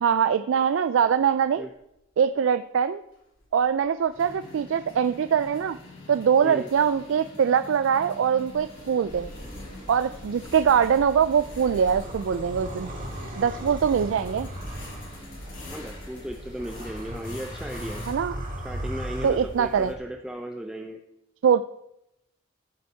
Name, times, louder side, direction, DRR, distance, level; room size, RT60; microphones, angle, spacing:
voice 1, 0.0-1.7 2.2-3.0 3.5-5.8 6.1-9.3 9.9-12.9 13.4-14.5 18.1-18.3 19.2-19.9 21.4-21.6, right 7 dB, 70° right, 11 dB, 0.3 m, -23 dB
sound 1, 1.2-1.3 1.7-1.9 3.2-18.1, left 1 dB, 70° left, 3.7 m, -45 dB
sound 2, 9.1-19.9, right 1 dB, 40° right, 1.9 m, -38 dB
voice 2, 15.7-18.0 18.6-21.0, equal, 5° right, 2 dB, 0.5 m, -36 dB
15.0 x 5.6 x 4.4 m, 0.86 s
head